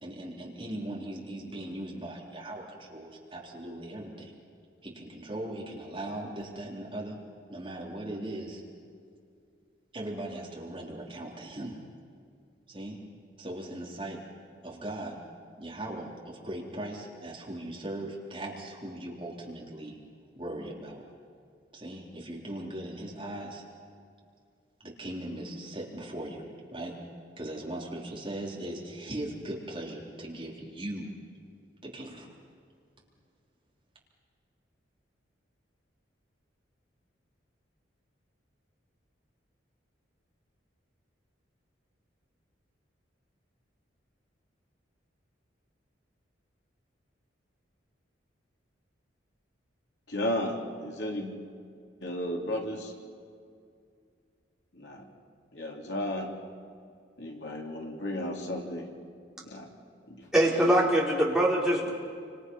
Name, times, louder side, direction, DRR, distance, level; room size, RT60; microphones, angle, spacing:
voice 1, 0.0-4.3 4.8-7.2 7.5-8.6 9.9-11.8 12.7-13.0 13.4-14.2 14.6-15.2 15.6-20.0 20.3-21.0 21.7-23.6 24.8-27.0 27.4-31.2 31.8-32.3, right 1 dB, 25° right, -3 dB, 3.9 m, -39 dB
voice 2, 50.1-51.4 52.0-52.9 54.7-55.1 55.5-56.3 57.2-58.9 59.4-59.7 60.1-60.3 61.7-61.8, left 1 dB, 65° left, 0 dB, 3.4 m, -34 dB
voice 3, 60.3-61.9, right 1 dB, 5° right, -5 dB, 4.5 m, -23 dB
29.0 x 26.0 x 5.6 m, 2.3 s
head